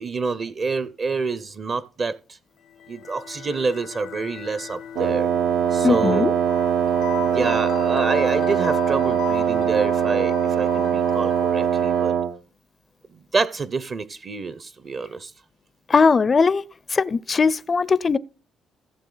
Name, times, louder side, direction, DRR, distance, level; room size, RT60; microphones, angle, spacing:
voice 1, 0.0-2.4 2.9-5.3 5.7-6.3 7.2-12.2 13.1-15.3, right 4 dB, 45° right, 0.7 m, -27 dB
sound 1, 2.7-12.2, left 10 dB, 80° left, 0.6 m, -36 dB
Wind instrument woodwind instrument, 5.0-12.4, right 8 dB, 85° right, 0.8 m, -22 dB
voice 2, 5.8-6.3 15.9-16.6 16.9-18.2, left 5 dB, 35° left, 0.4 m, -19 dB
15.5 x 7.4 x 3.9 m
cardioid pair, 90°, 0 cm